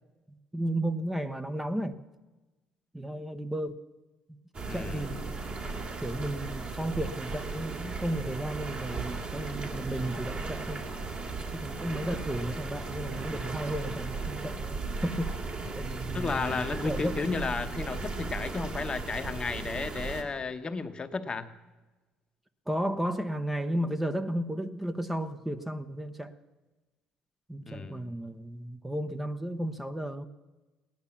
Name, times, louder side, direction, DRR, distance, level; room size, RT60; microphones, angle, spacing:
voice 1, 0.5-1.9 2.9-3.8 4.7-5.3 6.0-10.8 11.5-17.2 22.7-26.3 27.5-30.2, right 1 dB, 5° right, 8 dB, 0.9 m, -33 dB
sound 1, 4.5-20.2, right 3 dB, 40° right, 2.6 m, -36 dB
voice 2, 4.7-5.1 16.1-21.5 27.6-28.1, left 4 dB, 30° left, 9 dB, 1.0 m, -33 dB
17.5 x 10.5 x 7.1 m, 1.2 s
supercardioid pair, 80°, 3 cm